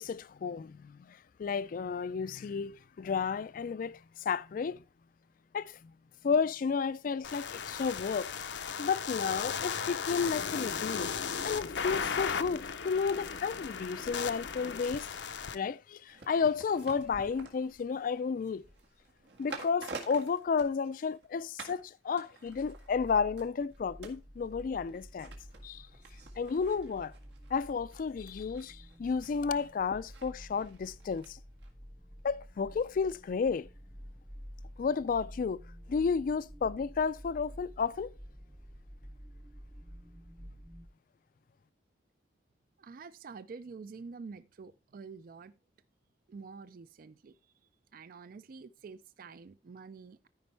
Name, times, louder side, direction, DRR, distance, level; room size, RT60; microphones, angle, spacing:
voice 1, 0.0-4.8 5.5-5.9 6.2-8.3 8.8-11.1 11.4-15.1 15.5-18.6 19.4-25.3 25.6-25.9 26.4-27.1 27.5-31.4 32.2-33.7 34.8-35.6 35.9-38.1, left 5 dB, 50° left, 0.3 m, -32 dB
sound 1, 7.2-15.6, left 6 dB, 85° left, 0.7 m, -36 dB
sound 2, 16.1-21.3 21.6-21.9 22.2-31.3 31.6-31.7, right 3 dB, 80° right, 1.8 m, -50 dB
sound 3, 22.4-40.9, equal, 10° right, 0.6 m, -50 dB
voice 2, 42.8-45.5 46.3-47.3 47.9-50.3, right 4 dB, 50° right, 0.4 m, -47 dB
13.5 x 5.2 x 3.3 m
head